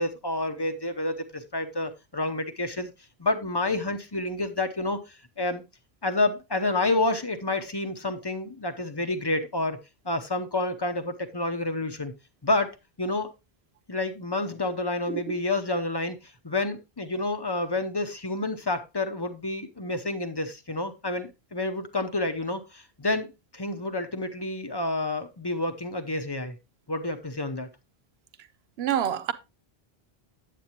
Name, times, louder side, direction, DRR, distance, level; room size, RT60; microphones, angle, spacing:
voice 1, 0.0-2.9 3.2-5.6 6.0-12.1 12.4-13.3 13.9-26.6 26.9-27.7, left 2 dB, 25° left, 0.8 m, -29 dB
voice 2, 28.8-29.3, right 9 dB, 75° right, 0.9 m, -26 dB
8.5 x 8.4 x 2.9 m
omnidirectional pair, 1.1 m